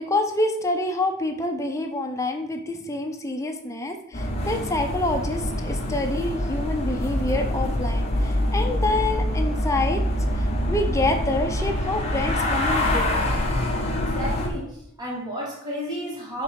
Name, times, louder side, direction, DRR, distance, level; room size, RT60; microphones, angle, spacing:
voice 1, 0.0-10.0 10.4-13.2, left 2 dB, 15° left, 4 dB, 0.6 m, -27 dB
sound 1, 4.1-14.5, left 1 dB, 30° left, 1.2 m, -25 dB
voice 2, 14.1-16.4, equal, 20° right, -5 dB, 1.8 m, -32 dB
5.6 x 3.8 x 5.0 m, 0.76 s
head